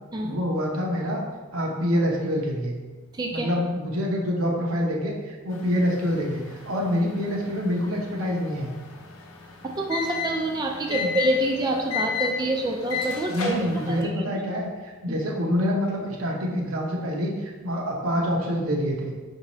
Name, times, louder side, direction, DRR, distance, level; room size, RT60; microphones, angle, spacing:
voice 1, 0.2-1.2 1.5-2.8 3.3-8.7 10.9-11.1 13.2-19.1, equal, 85° right, -1 dB, 0.8 m, -26 dB
voice 2, 3.1-3.5 9.6-14.2 15.1-15.2, right 1 dB, 20° right, 0 dB, 0.3 m, -27 dB
sound 1, 5.5-14.0, left 6 dB, 80° left, 0.6 m, -34 dB
5.2 x 2.7 x 3.0 m, 1.3 s
head